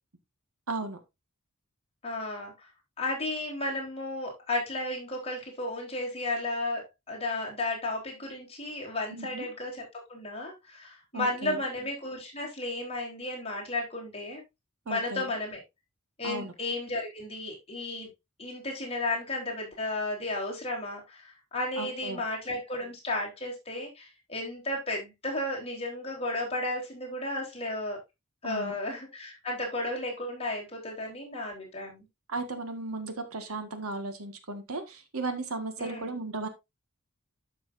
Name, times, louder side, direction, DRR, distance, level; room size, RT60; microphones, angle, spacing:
voice 1, 0.7-1.0 9.1-9.5 11.1-11.6 14.8-15.3 16.2-16.5 21.8-22.2 28.4-28.7 32.3-36.5, right 3 dB, 70° right, 7 dB, 1.7 m, -35 dB
voice 2, 2.0-2.5 3.0-9.8 10.1-14.4 14.9-15.6 16.2-18.1 18.4-28.0 28.4-32.0 35.8-36.1, left 2 dB, 25° left, -2 dB, 3.7 m, -33 dB
12.0 x 6.2 x 2.6 m, 0.22 s
head